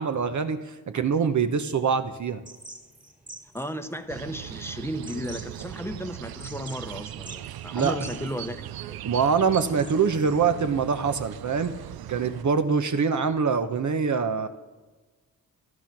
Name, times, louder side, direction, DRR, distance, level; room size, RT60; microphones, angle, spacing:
voice 1, 0.0-2.4 7.7-8.0 9.0-11.7 12.1-14.5, right 6 dB, 50° right, 9 dB, 1.0 m, -24 dB
sound 1, 2.4-10.2, right 1 dB, 20° right, 1.9 m, -48 dB
voice 2, 3.5-8.6 8.9-9.0, equal, 5° left, 8 dB, 0.9 m, -34 dB
sound 2, 4.1-12.4, right 13 dB, 80° right, 0.5 m, -39 dB
14.5 x 11.5 x 6.0 m, 1.3 s
cardioid pair, 90°, 37 cm